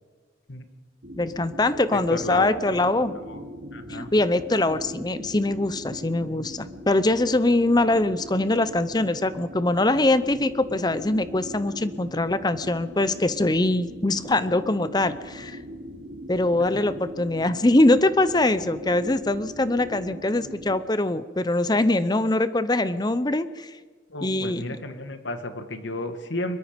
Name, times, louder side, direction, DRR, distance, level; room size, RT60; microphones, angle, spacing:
sound 1, 1.0-20.8, equal, 65° right, 3.2 m, -40 dB
voice 1, 1.2-3.1 3.9-15.6 16.3-23.7 24.2-24.8, left 2 dB, 20° left, 14 dB, 0.7 m, -23 dB
voice 2, 1.9-2.8 3.3-3.5 3.7-4.1 24.1-26.6, left 1 dB, 75° left, 8 dB, 2.0 m, -33 dB
24.5 x 22.0 x 5.2 m, 1.5 s
head